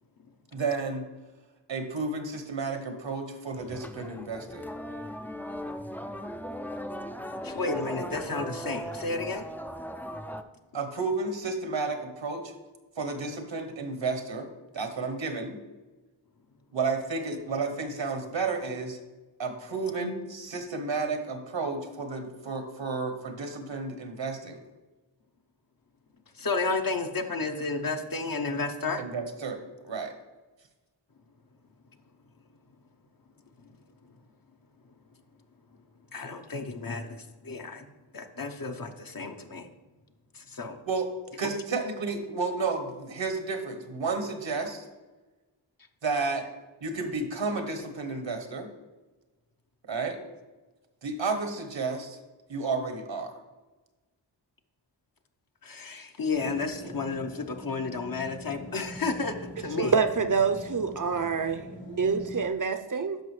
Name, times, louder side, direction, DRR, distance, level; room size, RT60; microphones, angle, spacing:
voice 1, 0.5-1.1 1.7-4.7 10.7-12.5 13.0-14.5 14.7-15.6 16.7-19.0 19.4-24.6 29.0-29.6 29.8-30.1 40.9-41.1 41.4-44.9 46.0-46.5 46.8-48.7 49.8-50.2 51.0-52.2 52.5-53.3, right 4 dB, 75° right, 1.1 m, -32 dB
sound 1, 3.5-10.4, equal, 5° left, 0.4 m, -38 dB
voice 2, 7.4-9.5 20.0-20.1 26.4-29.0 33.6-33.7 36.1-37.9 38.1-39.7 40.3-40.8 55.6-60.0, left 3 dB, 50° left, 0.8 m, -32 dB
sound 2, 56.3-62.4, left 1 dB, 80° left, 2.0 m, -44 dB
voice 3, 59.8-63.2, right 5 dB, 45° right, 0.6 m, -27 dB
12.0 x 5.0 x 3.2 m
wide cardioid pair, 55°, 45 cm